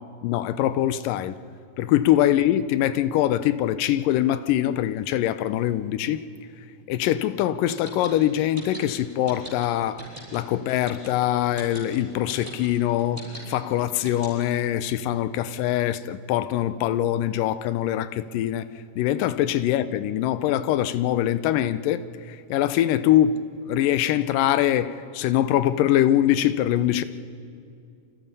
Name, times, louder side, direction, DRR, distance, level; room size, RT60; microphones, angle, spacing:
voice 1, 0.0-1.4 1.8-6.3 6.9-10.1 10.3-27.0, left 12 dB, 85° left, 2.4 m, -23 dB
sound 1, 7.7-14.6, right 1 dB, 10° right, 7.3 m, -40 dB
27.5 x 26.0 x 5.5 m
omnidirectional pair, 3.8 m